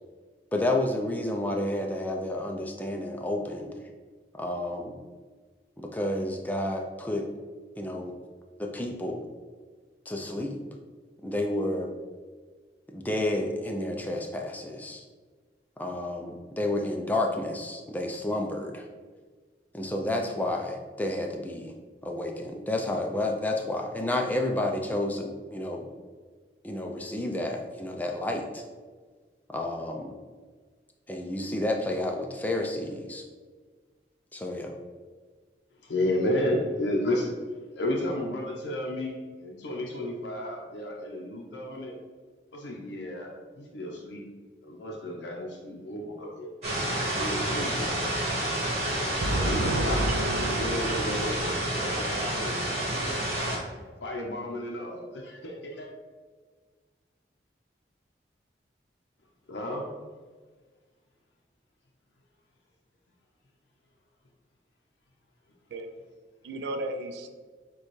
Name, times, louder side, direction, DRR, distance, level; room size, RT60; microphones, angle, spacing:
voice 1, 0.5-3.8 4.3-5.0 5.8-7.3 7.8-8.2 8.6-9.2 10.1-10.6 11.2-11.9 12.9-15.0 15.8-18.9 19.7-21.7 22.0-25.9 26.6-28.6 29.5-30.2 31.1-33.2 34.3-34.8, left 1 dB, 10° left, 2 dB, 0.4 m, -30 dB
voice 2, 35.8-37.3 37.7-42.0 42.5-44.2 44.6-46.5 47.2-48.4 49.2-50.0 50.6-53.6 54.0-55.9 59.5-59.9, left 1 dB, 90° left, -2 dB, 0.6 m, -32 dB
sound 1, 46.6-53.6, right 1 dB, 35° right, 1.5 m, -29 dB
voice 3, 49.2-51.6 65.7-65.9 66.4-67.3, right 1 dB, 75° right, 7 dB, 0.4 m, -31 dB
6.6 x 2.3 x 3.1 m, 1.5 s
head